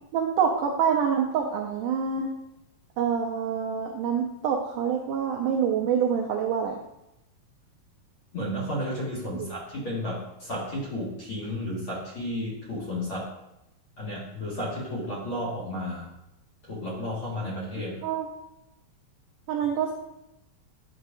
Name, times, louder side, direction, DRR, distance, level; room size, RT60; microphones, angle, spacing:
voice 1, 0.1-2.3 3.0-6.8 9.3-9.5 18.0-18.3 19.5-19.9, right 7 dB, 90° right, 1 dB, 1.8 m, -26 dB
voice 2, 8.3-13.3 14.0-16.1 16.7-17.9, left 1 dB, 45° left, -6 dB, 2.0 m, -32 dB
9.9 x 6.5 x 2.6 m, 0.87 s
omnidirectional pair, 4.6 m